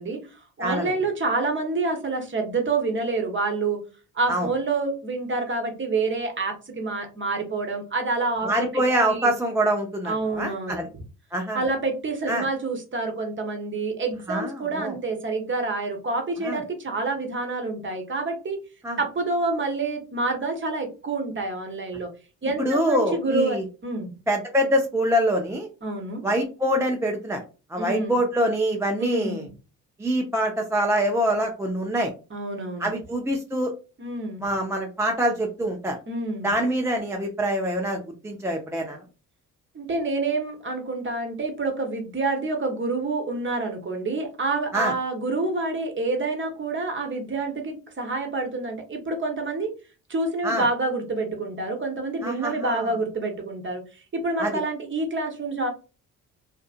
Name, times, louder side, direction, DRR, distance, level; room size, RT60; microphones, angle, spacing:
voice 1, 0.0-3.8 4.1-9.3 10.0-11.0 11.5-18.6 19.0-22.1 22.4-24.1 25.8-26.2 27.8-28.2 29.0-29.5 32.3-32.9 34.0-34.4 36.1-36.5 39.7-49.7 50.1-53.8 54.1-55.7, right 3 dB, 30° right, 4 dB, 1.0 m, -28 dB
voice 2, 0.6-0.9 4.3-4.5 8.4-10.9 11.3-11.6 12.3-12.5 14.3-14.9 16.4-16.6 18.8-19.0 22.6-23.6 24.3-25.7 26.2-27.4 27.7-29.5 30.0-32.1 32.8-33.7 34.4-36.0 36.4-39.0 44.7-44.9 50.4-50.7 52.2-52.9 54.4-54.5, equal, 5° right, 1 dB, 0.5 m, -25 dB
2.6 x 2.4 x 2.4 m, 0.33 s
hypercardioid pair, 50°, 42 cm